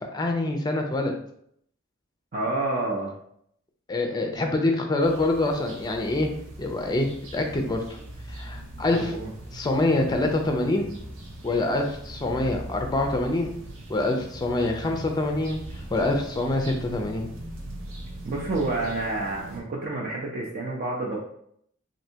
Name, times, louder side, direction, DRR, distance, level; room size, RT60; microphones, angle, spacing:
voice 1, 0.1-1.1 3.9-6.3 6.6-8.0 8.3-9.2 9.5-10.9 11.4-13.5 13.9-17.3, left 2 dB, 20° left, 3 dB, 0.4 m, -25 dB
voice 2, 2.3-3.1 8.9-9.3 18.2-21.2, right 2 dB, 45° right, -3 dB, 0.5 m, -29 dB
sound 1, 5.0-19.6, right 1 dB, 85° right, 0.8 m, -40 dB
3.2 x 2.6 x 2.8 m, 0.69 s
head